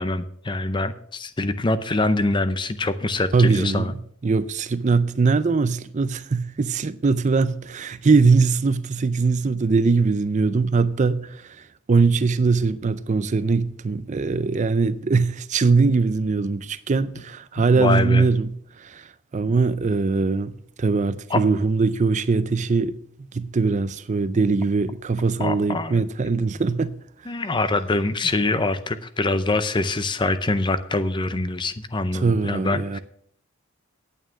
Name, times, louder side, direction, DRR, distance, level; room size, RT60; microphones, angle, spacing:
voice 1, 0.0-3.9 15.8-15.9 17.6-18.2 21.3-21.4 25.4-26.0 27.3-33.0, left 2 dB, 20° left, 0.6 m, -24 dB
voice 2, 3.3-23.0 23.3-26.9 27.2-27.4 32.1-33.0, right 4 dB, 35° right, 0.4 m, -21 dB
9.1 x 8.9 x 6.2 m
head